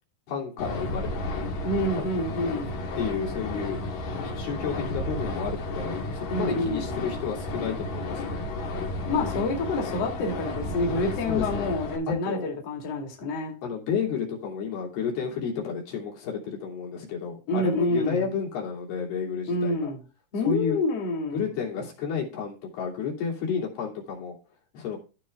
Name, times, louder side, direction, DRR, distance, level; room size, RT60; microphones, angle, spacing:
voice 1, 0.3-1.1 2.0-2.1 3.0-3.8 4.4-8.5 11.3-11.7 12.1-12.5 13.6-19.9 20.4-20.8 21.3-24.4 24.7-25.0, left 6 dB, 80° left, 4.9 m, -31 dB
sound 1, 0.6-12.0, left 2 dB, 65° left, 3.5 m, -32 dB
voice 2, 1.6-2.8 6.3-6.9 9.1-13.6 17.5-18.3 19.5-20.0 20.3-21.5, left 2 dB, 45° left, 3.0 m, -28 dB
14.5 x 5.5 x 3.6 m
omnidirectional pair, 4.5 m